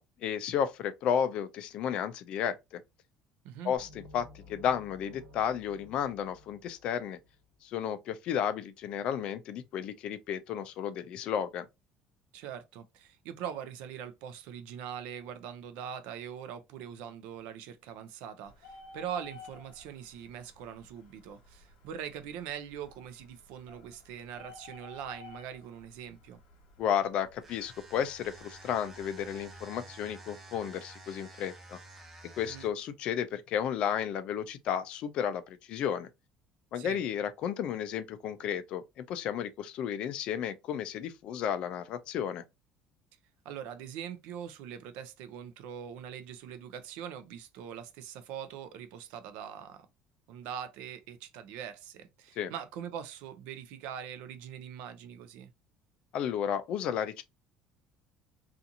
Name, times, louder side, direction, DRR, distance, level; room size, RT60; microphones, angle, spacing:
voice 1, 0.0-2.8 3.6-7.2 7.6-11.7 26.8-31.8 32.4-36.1 36.7-42.4 52.4-52.5 56.1-57.2, left 8 dB, 45° left, 0.3 m, -33 dB
sound 1, 3.8-7.5, left 2 dB, 50° right, 1.1 m, -54 dB
voice 2, 12.3-26.4 32.5-32.7 36.8-37.0 43.4-49.9 50.3-55.5, right 8 dB, 70° right, 0.5 m, -42 dB
Bird, 18.5-29.6, left 3 dB, 60° left, 1.2 m, -55 dB
sound 2, 27.4-32.9, right 2 dB, 15° right, 0.5 m, -50 dB
2.8 x 2.4 x 2.6 m
cardioid pair, 175°, 2 cm